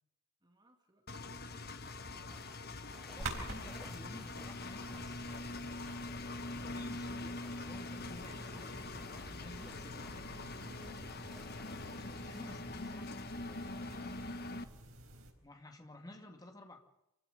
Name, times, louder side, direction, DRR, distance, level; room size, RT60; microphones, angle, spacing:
voice 1, 0.4-2.4 9.2-11.1 13.5-14.6, right 1 dB, 20° right, 3 dB, 2.5 m, -63 dB
Engine, 1.1-14.6, left 2 dB, 45° left, 1.2 m, -44 dB
sound 1, 1.8-12.6, equal, ahead, 1.6 m, -62 dB
voice 2, 3.1-5.9 6.4-9.8 11.9-13.1 15.4-16.8, left 1 dB, 20° left, 4 dB, 2.3 m, -53 dB
sound 2, 3.2-15.3, right 2 dB, 85° right, 4.3 m, -50 dB
26.5 x 15.5 x 6.7 m, 0.88 s
head